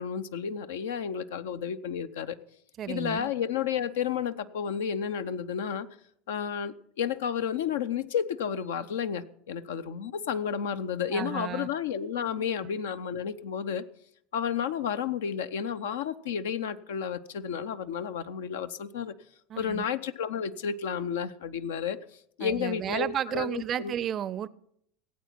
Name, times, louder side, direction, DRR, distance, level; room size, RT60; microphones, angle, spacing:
voice 1, 0.0-2.4 2.9-5.9 6.3-13.8 14.3-19.1 19.6-22.0 22.4-23.9, left 7 dB, 65° left, 12 dB, 0.6 m, -31 dB
voice 2, 2.8-3.3 11.1-11.7 12.4-12.5 19.5-19.8 22.4-24.5, right 10 dB, 35° right, 20 dB, 0.5 m, -33 dB
16.5 x 8.4 x 5.8 m, 0.71 s
figure-of-eight pair, 75°, 0 cm